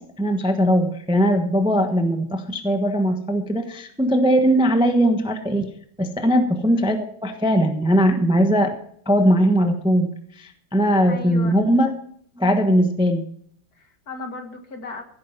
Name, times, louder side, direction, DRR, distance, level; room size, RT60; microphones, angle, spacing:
voice 1, 0.0-5.7 6.0-8.8 9.1-11.9 12.4-13.2, equal, 5° right, 6 dB, 0.9 m, -20 dB
voice 2, 11.1-11.6 13.8-15.0, left 4 dB, 50° left, 5 dB, 2.2 m, -36 dB
16.0 x 8.9 x 5.8 m, 0.65 s
omnidirectional pair, 2.1 m